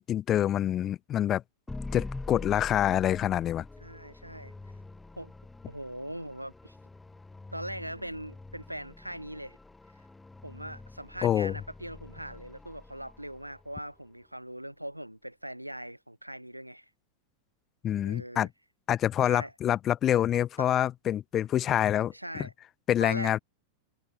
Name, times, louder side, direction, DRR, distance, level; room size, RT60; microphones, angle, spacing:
voice 1, 0.0-1.4 1.9-3.6 11.2-11.5 17.8-18.5 18.9-22.1 22.9-23.4, left 11 dB, 30° left, 1.5 m, -26 dB
sound 1, 1.7-13.8, left 2 dB, 10° left, 4.2 m, -45 dB
voice 2, 3.8-4.5 5.2-5.3 5.7-6.8 7.5-9.6 10.4-16.9 18.0-18.5 19.3-19.5 20.6-20.7 22.1-22.5 23.0-23.3, right 1 dB, 90° right, 2.9 m, -41 dB
figure-of-eight pair, 90°, 0 cm